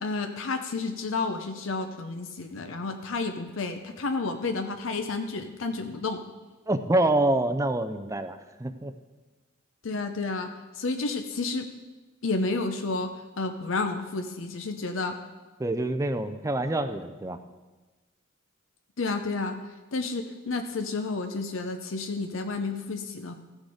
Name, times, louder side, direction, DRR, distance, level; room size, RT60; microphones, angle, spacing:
voice 1, 0.0-6.2 9.8-11.7 12.2-15.2 19.0-19.6 19.9-23.3, left 3 dB, 70° left, 6 dB, 0.7 m, -31 dB
voice 2, 6.7-8.9 15.6-17.4, right 2 dB, 15° right, 9 dB, 0.4 m, -26 dB
14.5 x 6.4 x 4.9 m, 1.2 s
head